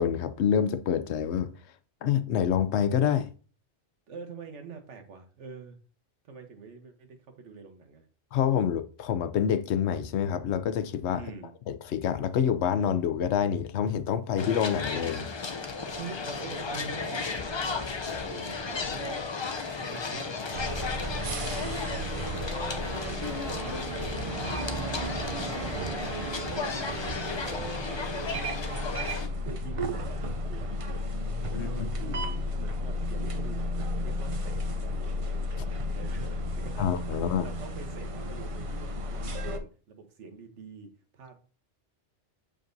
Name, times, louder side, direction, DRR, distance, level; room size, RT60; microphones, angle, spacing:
voice 1, 0.0-1.5 2.0-3.3 8.3-11.2 11.7-15.2 31.5-31.7 36.8-37.5, left 8 dB, 75° left, 0.8 m, -27 dB
voice 2, 4.1-5.8 6.2-8.0 11.1-11.5 16.0-19.2 19.8-20.7 21.0-24.9 25.5-28.3 29.4-30.9 31.4-35.4 35.9-41.4, right 4 dB, 80° right, 1.3 m, -46 dB
sound 1, 14.4-29.3, left 4 dB, 45° left, 0.3 m, -34 dB
sound 2, 20.5-39.6, left 1 dB, 45° right, 0.4 m, -33 dB
sound 3, 21.2-29.2, right 2 dB, 15° right, 1.5 m, -44 dB
7.1 x 5.1 x 2.6 m
omnidirectional pair, 1.2 m